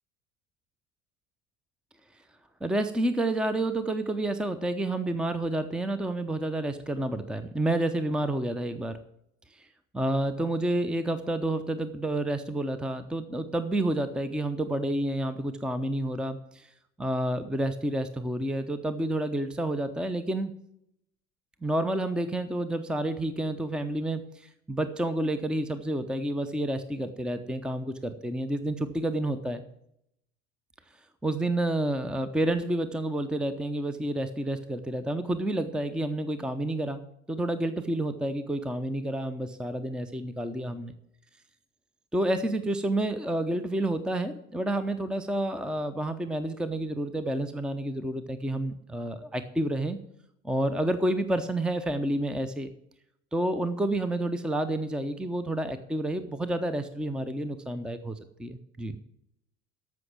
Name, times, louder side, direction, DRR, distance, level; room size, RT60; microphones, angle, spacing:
voice 1, 2.6-9.0 9.5-9.7 9.9-16.7 17.0-20.5 21.6-29.6 31.2-37.0 37.3-40.9 42.1-50.0 50.4-52.7 53.3-59.0, right 1 dB, ahead, 12 dB, 0.8 m, -29 dB
14.0 x 5.9 x 7.4 m, 0.76 s
figure-of-eight pair, 65°, 36 cm